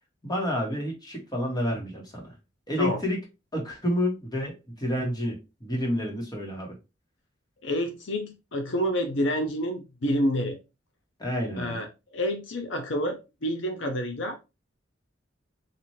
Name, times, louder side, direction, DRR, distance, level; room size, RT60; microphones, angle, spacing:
voice 1, 0.2-2.3 2.7-3.2 3.5-6.8 11.2-11.8, left 1 dB, 20° left, 1.3 m, -29 dB
voice 2, 7.6-10.6 11.6-14.4, equal, 70° left, 0.6 m, -28 dB
4.1 x 2.6 x 3.1 m
head